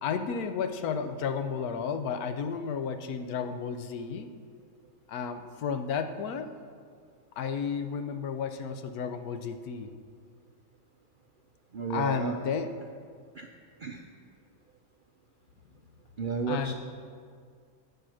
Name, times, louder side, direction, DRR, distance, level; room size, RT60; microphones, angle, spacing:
voice 1, 0.0-4.3 5.1-6.5 7.4-9.9 11.9-12.7 16.5-16.7, left 6 dB, 85° left, 8 dB, 1.2 m, -32 dB
voice 2, 11.7-12.5 13.3-13.5 13.8-14.0 16.2-16.7, right 5 dB, 60° right, 3 dB, 0.5 m, -33 dB
13.5 x 5.1 x 6.3 m, 2.1 s
omnidirectional pair, 1.5 m